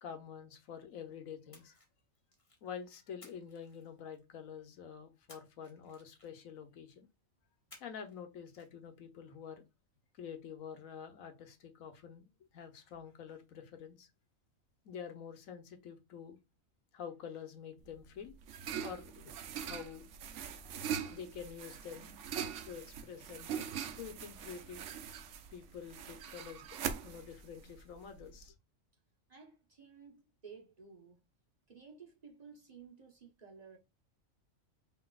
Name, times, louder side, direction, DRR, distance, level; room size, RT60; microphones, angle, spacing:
voice 1, 0.0-1.8 2.6-7.1 7.8-9.6 10.2-12.3 12.5-14.1 14.8-16.4 16.9-18.3 18.8-20.1 21.0-22.2 22.6-24.8 25.5-26.7 27.0-28.5, left 7 dB, 90° left, 1.4 m, -48 dB
Splash splatter, 1.5-2.7 3.2-4.4 5.3-6.6 7.7-8.2 8.5-8.7, left 2 dB, 25° left, 1.4 m, -60 dB
sound 1, 17.8-28.4, right 8 dB, 70° right, 0.9 m, -42 dB
voice 2, 29.3-31.2 31.7-33.8, right 5 dB, 35° right, 1.0 m, -55 dB
5.9 x 3.3 x 2.3 m
omnidirectional pair, 1.4 m